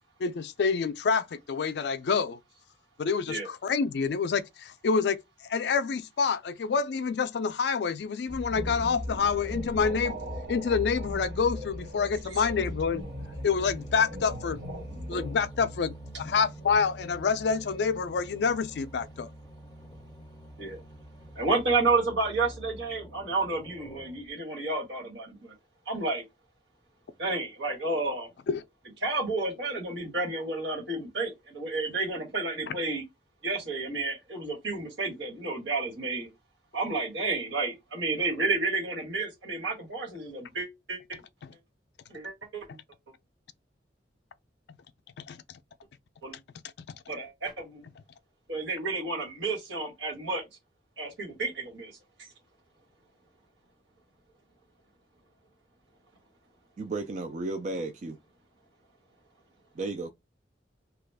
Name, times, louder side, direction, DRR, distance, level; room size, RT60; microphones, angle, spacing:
voice 1, 0.2-2.4 3.0-5.2 5.5-10.2 10.5-13.0 13.4-14.6 15.1-19.3 28.5-28.6 32.7-32.8 41.4-41.5 45.2-45.4 46.9-47.0, left 5 dB, 65° left, 0.4 m, -27 dB
sound 1, 8.3-15.4, equal, 65° right, 1.3 m, -38 dB
sound 2, 13.0-24.3, right 1 dB, 10° left, 0.6 m, -45 dB
voice 2, 21.3-25.5 25.9-26.2 27.2-28.3 29.0-33.0 33.4-36.3 36.7-41.2 42.1-42.6 46.2-46.4 47.1-47.8 48.5-50.4 51.0-51.9 52.2-52.3, right 3 dB, 80° right, 1.5 m, -31 dB
voice 3, 56.8-58.2 59.7-60.1, right 3 dB, 40° right, 0.3 m, -33 dB
2.9 x 2.3 x 3.3 m
head